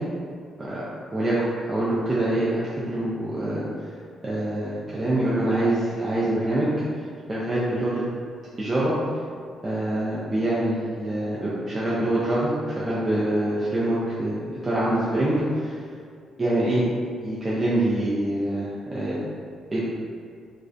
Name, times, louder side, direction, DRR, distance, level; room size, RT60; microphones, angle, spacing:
voice 1, 1.6-3.6 4.2-6.7 7.3-8.0 8.6-8.9 9.6-15.8 16.4-16.8 17.2-19.2 19.7-19.9, right 1 dB, 25° right, -9 dB, 0.4 m, -25 dB
2.4 x 2.1 x 2.5 m, 2.2 s
cardioid pair, 90°, 0 cm